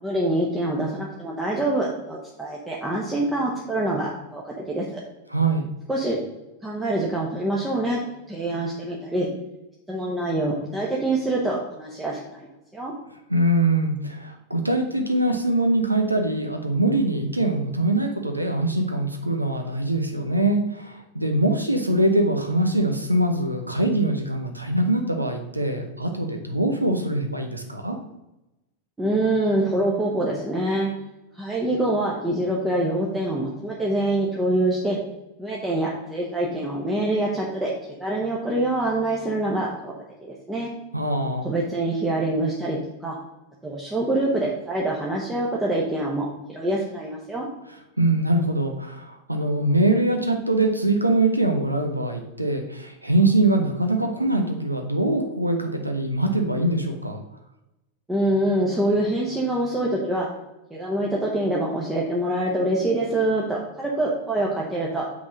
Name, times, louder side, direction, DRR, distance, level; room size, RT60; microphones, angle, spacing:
voice 1, 0.0-4.9 5.9-6.2 6.6-8.0 8.3-9.3 9.9-12.5 12.7-12.9 29.0-30.9 31.3-35.0 35.4-37.7 38.0-39.9 40.2-40.7 41.4-43.2 43.6-47.5 58.1-60.3 60.7-65.1, right 1 dB, 10° right, -4 dB, 1.1 m, -25 dB
voice 2, 5.3-5.7 13.3-28.0 40.9-41.5 48.0-57.2, right 1 dB, 85° right, 5 dB, 0.7 m, -23 dB
6.0 x 3.9 x 6.1 m, 0.97 s
figure-of-eight pair, 90°, 0 cm